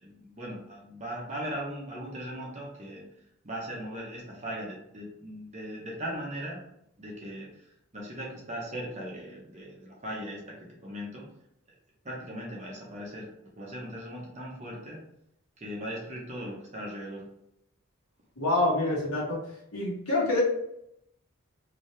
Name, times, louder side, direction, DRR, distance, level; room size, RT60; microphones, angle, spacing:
voice 1, 0.0-3.0 3.4-6.6 7.0-7.5 7.9-10.5 10.8-11.2 12.0-13.3 13.6-15.0 15.6-17.2, equal, 30° right, -2 dB, 0.8 m, -38 dB
voice 2, 18.4-19.4 19.7-20.4, left 2 dB, 80° left, -5 dB, 1.3 m, -26 dB
3.1 x 2.7 x 3.2 m, 0.78 s
head